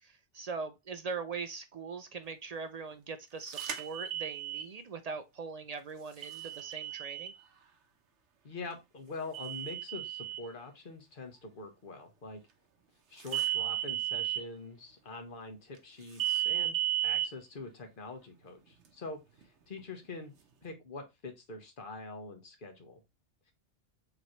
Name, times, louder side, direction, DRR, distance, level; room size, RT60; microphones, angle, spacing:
voice 1, 0.0-7.3, right 4 dB, 60° right, 0.4 m, -41 dB
sound 1, 3.5-4.7 6.2-7.3 9.3-10.4 13.3-14.4 16.2-17.3, right 12 dB, 85° right, 1.1 m, -33 dB
voice 2, 8.4-12.4 13.1-20.3 20.6-23.0, left 3 dB, 50° left, 1.2 m, -44 dB
5.0 x 3.1 x 3.0 m
omnidirectional pair, 1.1 m